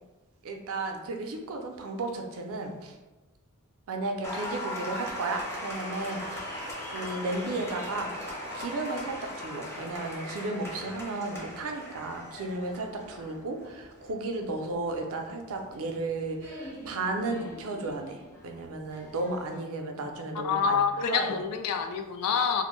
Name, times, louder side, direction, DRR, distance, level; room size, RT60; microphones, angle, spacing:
voice 1, 0.4-2.9 3.9-8.1 8.5-18.2 18.4-21.4, right 2 dB, 65° right, 3 dB, 0.4 m, -34 dB
Applause, 4.2-19.6, left 1 dB, 10° left, 0.6 m, -40 dB
voice 2, 20.3-22.6, left 6 dB, 80° left, 7 dB, 0.3 m, -27 dB
2.5 x 2.1 x 3.0 m, 1.1 s
head